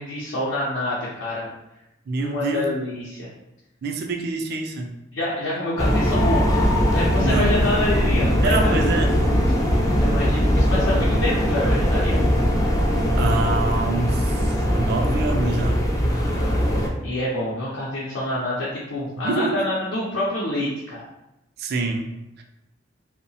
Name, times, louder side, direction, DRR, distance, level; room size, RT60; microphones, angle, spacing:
voice 1, 0.0-1.5 2.2-3.3 5.1-9.1 10.0-12.3 16.1-21.0, left 1 dB, 80° left, -7 dB, 0.6 m, -27 dB
voice 2, 2.1-2.7 3.8-4.9 7.2-7.6 8.4-9.1 13.2-15.8 19.2-19.6 21.6-22.4, right 3 dB, 55° right, 3 dB, 0.4 m, -26 dB
sound 1, 5.8-16.9, equal, 20° left, 0.4 m, -20 dB
2.7 x 2.1 x 2.7 m, 0.90 s
head